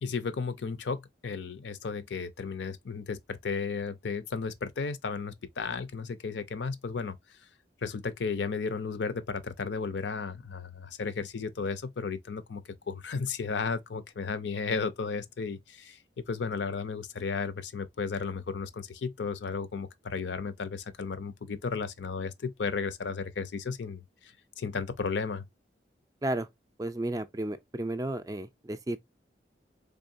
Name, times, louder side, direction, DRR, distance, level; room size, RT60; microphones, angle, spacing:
voice 1, 0.0-7.2 7.8-16.0 16.3-25.4, left 5 dB, 70° left, 0.5 m, -34 dB
voice 2, 26.8-29.0, right 1 dB, 20° right, 0.4 m, -33 dB
3.7 x 3.5 x 2.5 m
head